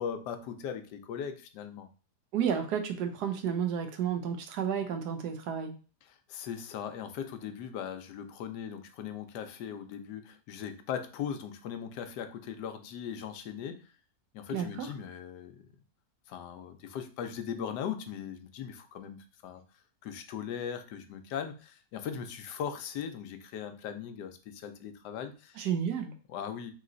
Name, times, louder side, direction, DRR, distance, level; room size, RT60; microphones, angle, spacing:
voice 1, 0.0-1.9 6.0-13.8 14.3-15.6 16.3-19.6 20.0-25.6 26.3-26.7, left 8 dB, 85° left, 7 dB, 1.2 m, -39 dB
voice 2, 2.3-5.7 14.5-14.9 25.6-26.1, right 8 dB, 75° right, 7 dB, 1.3 m, -31 dB
3.8 x 3.2 x 3.8 m, 0.36 s
omnidirectional pair, 1.8 m